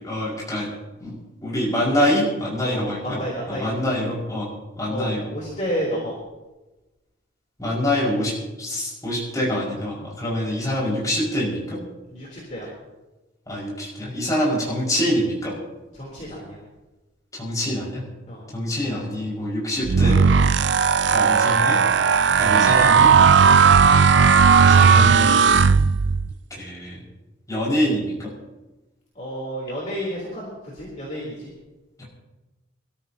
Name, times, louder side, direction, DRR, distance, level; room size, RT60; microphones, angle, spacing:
voice 1, 0.0-0.7 1.0-1.2 1.4-3.2 3.5-4.5 4.8-5.2 7.6-8.3 8.6-11.8 13.5-15.5 17.3-18.0 18.5-20.2 21.1-21.8 22.4-23.2 24.6-25.9 26.5-27.0 27.5-28.3 32.0-32.1, left 1 dB, 15° left, -5 dB, 5.7 m, -25 dB
voice 2, 2.6-3.9 4.9-6.2 12.1-12.7 15.9-16.6 18.3-18.4 29.2-31.5, equal, 35° left, -5 dB, 3.6 m, -31 dB
sound 1, 19.8-26.3, right 6 dB, 60° right, 0.4 m, -15 dB
25.5 x 13.5 x 2.9 m, 1.1 s
head